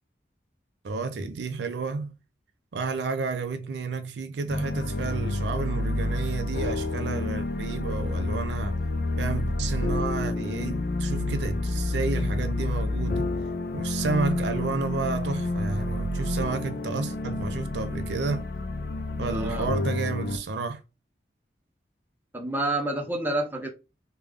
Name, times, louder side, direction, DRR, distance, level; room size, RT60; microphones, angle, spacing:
voice 1, 0.8-2.1 2.7-8.7 9.2-13.3 13.7-18.4 19.2-20.8, right 4 dB, 80° right, 0.4 m, -31 dB
sound 1, 4.5-20.4, left 2 dB, 55° left, 0.4 m, -29 dB
voice 2, 19.3-19.7 22.3-23.7, right 1 dB, 10° right, 0.6 m, -28 dB
3.4 x 2.2 x 3.5 m
head